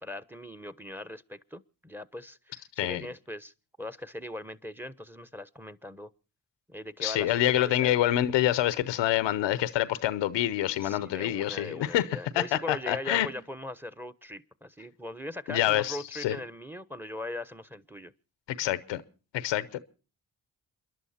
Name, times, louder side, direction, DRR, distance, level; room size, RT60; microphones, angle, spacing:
voice 1, 0.0-6.1 6.7-8.0 10.8-18.1, left 1 dB, 5° right, 1.0 m, -40 dB
voice 2, 7.0-13.3 15.5-16.4 18.5-19.0 19.3-19.8, left 13 dB, 90° left, 0.8 m, -27 dB
28.5 x 11.0 x 4.2 m
supercardioid pair, 45°, 43 cm